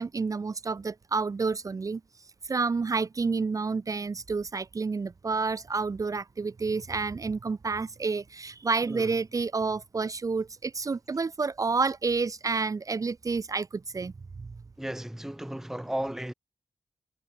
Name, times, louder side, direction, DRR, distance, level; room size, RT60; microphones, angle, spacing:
voice 1, 0.0-2.0 2.4-14.1 14.4-14.5, right 4 dB, 35° right, 1.1 m, -29 dB
voice 2, 14.8-16.3, right 1 dB, 5° right, 1.4 m, -34 dB
wide cardioid pair, 135°, 10 cm